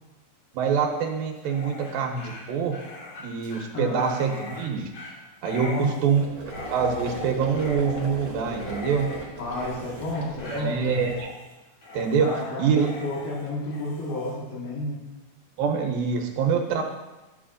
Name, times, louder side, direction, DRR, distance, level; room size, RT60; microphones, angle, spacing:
voice 1, 0.5-2.8 3.2-4.9 5.4-6.2 6.7-9.1 10.5-11.3 11.9-12.3 12.6-12.9 15.6-16.8, right 6 dB, 80° right, 3 dB, 2.7 m, -25 dB
Dog, 1.3-14.3, left 3 dB, 60° left, 2.4 m, -41 dB
sound 1, 6.1-11.2, right 3 dB, 50° right, 2.0 m, -38 dB
voice 2, 9.4-11.1 12.2-15.0, left 1 dB, 75° left, -5 dB, 3.5 m, -31 dB
11.5 x 7.3 x 2.5 m, 1.1 s
omnidirectional pair, 4.3 m